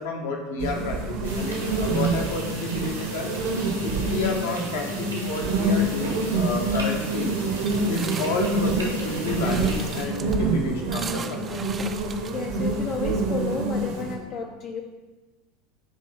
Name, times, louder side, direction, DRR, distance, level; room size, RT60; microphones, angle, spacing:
voice 1, 0.0-3.3 3.8-7.4 7.8-11.7, left 3 dB, 65° left, 1 dB, 1.3 m, -30 dB
sound 1, 0.6-14.2, right 2 dB, 60° right, 1.1 m, -27 dB
sound 2, 1.2-10.0, right 2 dB, 85° right, 1.7 m, -37 dB
sound 3, 7.7-13.0, right 5 dB, 25° right, 0.5 m, -39 dB
voice 2, 12.3-14.8, left 5 dB, 45° left, 1 dB, 0.6 m, -32 dB
8.5 x 3.3 x 5.4 m, 1.2 s
figure-of-eight pair, 75°, 0 cm